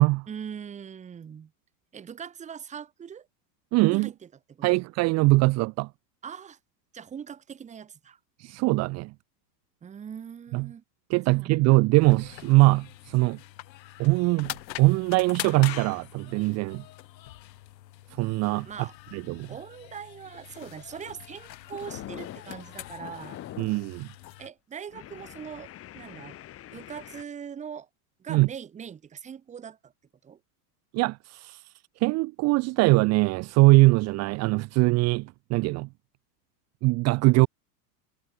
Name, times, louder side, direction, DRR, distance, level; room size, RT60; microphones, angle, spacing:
voice 1, 0.3-1.5 1.9-3.3 3.9-4.1 4.5-4.8 6.2-6.6 6.9-8.2 9.8-10.8 11.3-11.7 18.6-18.9 19.5-23.4 24.4-26.4 26.7-27.9 28.2-29.9 30.2-30.4, right 7 dB, 15° right, 1.1 m, -41 dB
voice 2, 3.7-4.1 4.6-5.9 8.4-9.1 10.5-10.7 11.1-13.4 14.0-16.8 18.1-18.7 19.1-19.5 23.6-24.1 28.3-28.5 30.9-35.9 36.8-37.5, right 23 dB, 30° right, 0.7 m, -22 dB
sound 1, 12.0-24.5, left 14 dB, 85° left, 2.5 m, -43 dB
sound 2, 20.8-21.1 21.4-23.9 24.2-24.4 24.9-27.2, left 13 dB, 25° left, 2.0 m, -44 dB
supercardioid pair, 140°, 50 cm